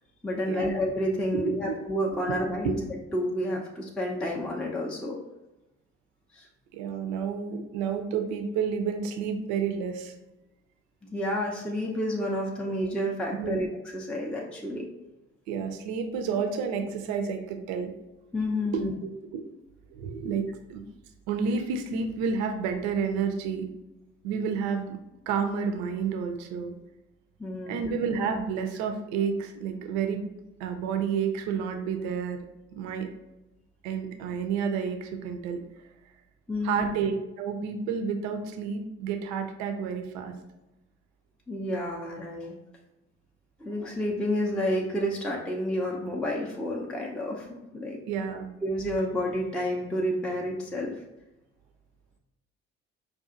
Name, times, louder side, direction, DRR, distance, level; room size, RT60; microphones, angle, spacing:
voice 1, 0.2-5.2 6.3-6.5 11.1-13.7 13.9-14.9 18.3-18.9 27.4-27.9 36.5-36.9 41.5-42.5 43.6-48.0 48.6-51.0, equal, 5° left, -2 dB, 0.4 m, -30 dB
voice 2, 1.3-1.8 2.3-2.7 6.7-10.1 13.3-13.6 15.5-17.9 18.7-18.8 19.3-19.4 19.9-20.8 21.3-23.7 24.2-25.0 25.3-26.7 27.7-30.3 30.6-32.4 32.7-33.1 33.8-35.6 36.6-40.3 48.1-48.5, right 6 dB, 55° right, 5 dB, 0.5 m, -30 dB
5.4 x 2.3 x 2.5 m, 1.0 s
figure-of-eight pair, 50°, 34 cm